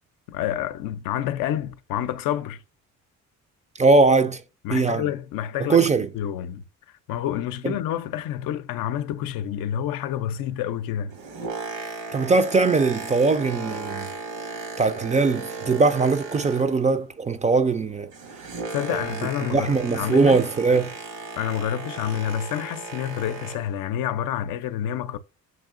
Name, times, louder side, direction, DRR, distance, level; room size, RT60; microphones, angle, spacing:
voice 1, 0.3-2.6 4.6-6.6 7.1-11.1 18.7-20.4 21.4-25.2, left 10 dB, 75° left, 0.5 m, -28 dB
voice 2, 3.8-4.4 4.7-5.0 5.6-6.1 7.6-7.8 12.1-14.1 14.8-18.1 18.9-19.0 19.5-20.9, right 3 dB, 20° right, 0.4 m, -20 dB
Boat Water vehicle, 10.9-17.0 17.3-23.8 24.4-24.5, right 4 dB, 85° right, 1.6 m, -36 dB
7.4 x 2.9 x 2.4 m
cardioid pair, 80°, 35 cm